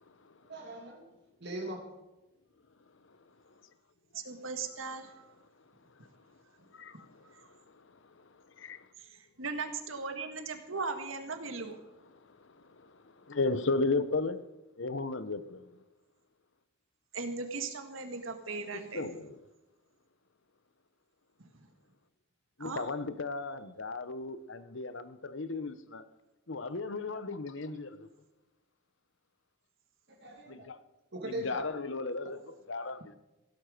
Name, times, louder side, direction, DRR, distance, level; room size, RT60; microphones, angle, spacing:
voice 1, 0.4-1.0 1.4-1.8 30.1-30.7 31.1-31.6, right 1 dB, 50° right, 2.5 m, -40 dB
voice 2, 4.1-5.3 6.9-7.5 9.0-11.8 17.1-19.1 21.5-21.7 22.6-22.9, right 4 dB, 70° right, 1.8 m, -38 dB
voice 3, 6.7-7.3 7.7-7.8 8.2-8.3 8.6-8.9 12.3-14.4 14.8-15.8 18.7-19.4 22.6-26.1 26.5-28.1 30.5-30.8 31.2-33.2, left 3 dB, 60° left, 0.9 m, -35 dB
16.5 x 12.0 x 5.1 m
head